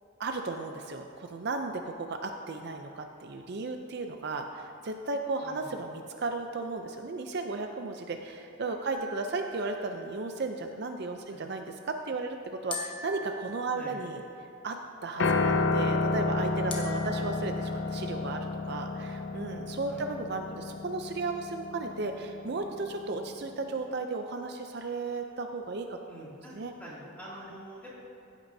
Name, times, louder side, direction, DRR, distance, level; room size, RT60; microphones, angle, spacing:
voice 1, 0.2-14.2 14.6-20.4 20.8-26.7, right 3 dB, 55° right, 5 dB, 0.5 m, -35 dB
voice 2, 5.4-5.8 8.3-8.4 11.3-11.4 13.7-14.0 15.4-15.6 17.2-17.3 19.8-20.2 20.5-20.6 26.1-26.5 26.8-28.0, equal, 10° left, -8 dB, 2.6 m, -47 dB
sound 1, 8.9-10.4 12.7-14.4 16.7-17.8, left 2 dB, 25° left, 1.1 m, -43 dB
Piano, 15.2-23.5, left 3 dB, 60° left, 0.5 m, -31 dB
15.5 x 9.0 x 2.7 m, 2.7 s
head